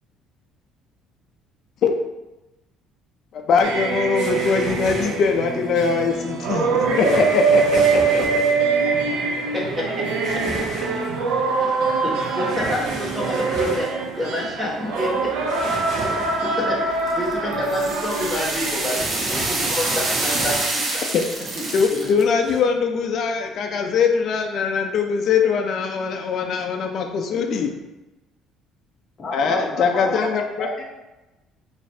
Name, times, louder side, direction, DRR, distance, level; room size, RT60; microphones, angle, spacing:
voice 1, 3.3-8.4 21.1-21.3 21.7-27.7 29.3-30.7, left 5 dB, 45° left, 2 dB, 0.4 m, -22 dB
sound 1, 3.6-20.8, right 4 dB, 75° right, 0.6 m, -24 dB
sound 2, 4.2-5.4 6.9-8.6 10.2-11.0 12.5-13.9 15.5-16.6 18.9-20.8 22.4-22.6, right 1 dB, 60° right, 1.5 m, -32 dB
voice 2, 9.5-10.5 10.8-10.9 11.6-21.0 21.5-22.1, left 1 dB, 5° right, -5 dB, 1.2 m, -29 dB
sound 3, 17.1-22.2, right 2 dB, 35° right, 0.7 m, -26 dB
voice 3, 29.2-30.8, left 2 dB, 25° left, -3 dB, 1.0 m, -30 dB
5.1 x 3.2 x 2.7 m, 1.0 s
cardioid pair, 165°, 0 cm